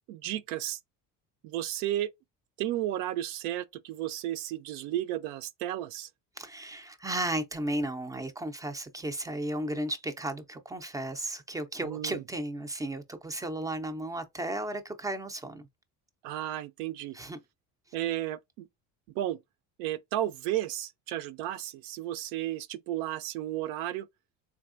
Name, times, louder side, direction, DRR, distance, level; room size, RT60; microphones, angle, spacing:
voice 1, 0.1-0.8 1.4-2.1 2.6-6.1 11.8-12.2 16.2-17.2 17.9-18.7 19.1-19.4 19.8-24.1, right 13 dB, 80° right, 0.5 m, -33 dB
voice 2, 6.4-15.7 17.1-17.4, right 1 dB, 10° right, 0.3 m, -34 dB
3.6 x 3.5 x 2.4 m
cardioid pair, 130°, 39 cm